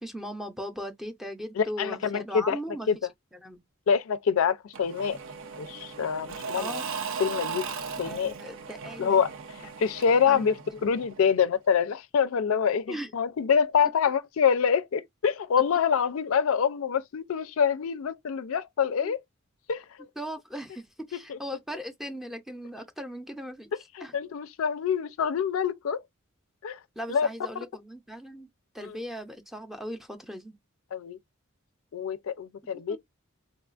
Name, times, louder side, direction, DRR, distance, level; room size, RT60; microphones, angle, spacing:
voice 1, 0.0-2.9 3.3-3.6 6.6-6.8 8.0-9.2 10.3-10.5 12.9-13.1 19.0-19.1 20.2-23.7 24.0-24.1 27.0-28.5 28.7-30.5 32.9-33.0, equal, ahead, 0.6 m, -38 dB
voice 2, 1.6-2.6 2.9-3.0 3.9-5.2 5.6-6.8 7.2-7.7 8.0-8.3 9.0-9.3 9.8-10.6 10.8-19.2 19.7-20.1 21.3-21.4 24.0-26.0 26.6-26.8 27.1-27.3 28.8-29.0 30.9-31.2 31.9-33.0, left 7 dB, 70° left, 0.4 m, -26 dB
Engine / Mechanisms / Drill, 4.7-11.4, right 5 dB, 65° right, 0.6 m, -38 dB
3.9 x 2.3 x 2.4 m
head